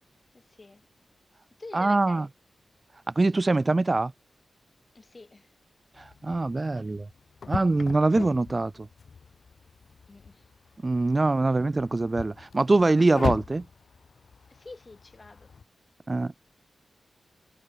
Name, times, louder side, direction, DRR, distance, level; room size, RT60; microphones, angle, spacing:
voice 1, 0.3-0.9 1.6-2.3 4.9-5.5 10.1-10.5 14.5-15.5, left 3 dB, 35° left, 5.2 m, -47 dB
voice 2, 1.7-2.3 3.2-4.1 6.0-7.1 7.5-8.9 10.8-13.7 16.1-16.3, right 2 dB, 30° right, 0.9 m, -23 dB
sound 1, 5.9-15.6, left 5 dB, 70° left, 1.6 m, -39 dB
cardioid pair, 75°, 0 cm